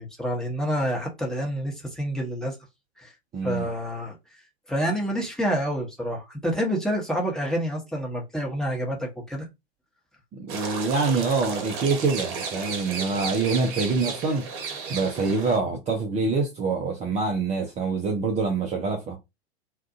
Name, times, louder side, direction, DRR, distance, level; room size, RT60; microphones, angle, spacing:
voice 1, 0.0-2.6 3.0-3.1 3.4-4.2 4.7-9.5, equal, ahead, 0.9 m, -28 dB
voice 2, 3.3-3.7 10.4-14.5 14.9-19.2, right 4 dB, 20° right, 0.6 m, -25 dB
sound 1, 10.5-15.6, right 5 dB, 45° right, 0.9 m, -33 dB
2.6 x 2.4 x 2.4 m
figure-of-eight pair, 95°, 33 cm